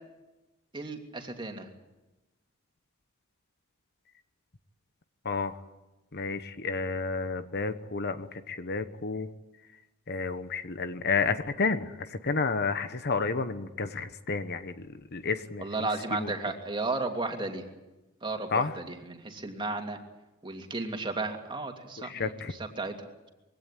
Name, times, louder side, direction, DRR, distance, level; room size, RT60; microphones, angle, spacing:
voice 1, 0.7-1.7 15.6-17.6 18.2-20.0 20.4-23.3, right 3 dB, 25° right, 3 dB, 2.8 m, -34 dB
voice 2, 6.1-9.3 10.1-14.7 15.1-15.6 16.1-16.3 18.5-18.7 22.0-22.5, left 4 dB, 50° left, 10 dB, 1.1 m, -31 dB
22.5 x 17.0 x 9.2 m, 1.0 s
head